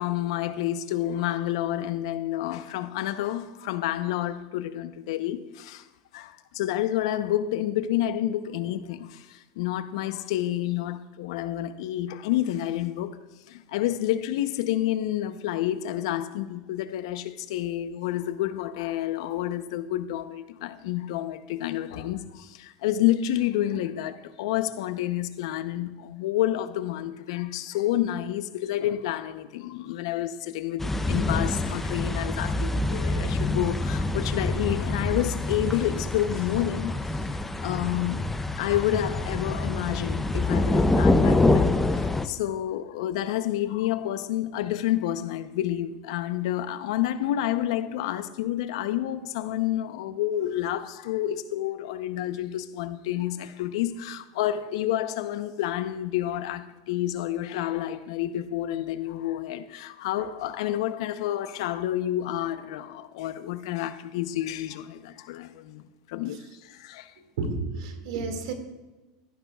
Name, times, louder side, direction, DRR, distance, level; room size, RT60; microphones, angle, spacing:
voice 1, 0.0-5.9 6.1-13.2 13.5-37.0 37.6-38.2 38.6-65.8 66.1-67.1, left 12 dB, 75° left, 0.8 m, -29 dB
sound 1, 30.8-42.3, left 2 dB, 10° left, 0.5 m, -26 dB
voice 2, 67.4-68.5, right 3 dB, 80° right, 2.1 m, -31 dB
14.5 x 11.5 x 2.4 m
supercardioid pair, 135°, 3 cm